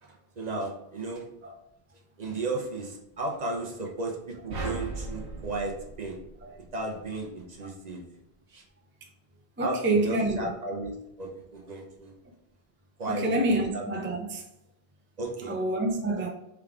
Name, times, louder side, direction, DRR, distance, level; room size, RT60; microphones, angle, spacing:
voice 1, 0.0-1.2 2.2-6.2 6.7-8.0 8.5-8.6 9.6-12.1 13.0-13.9 15.2-15.5, right 2 dB, 45° right, 0.8 m, -34 dB
sound 1, 4.5-6.9, right 3 dB, 65° right, 1.1 m, -37 dB
voice 2, 9.6-10.5 13.1-14.4 15.5-16.3, right 2 dB, 20° right, 0.4 m, -27 dB
3.5 x 3.5 x 3.5 m
omnidirectional pair, 1.0 m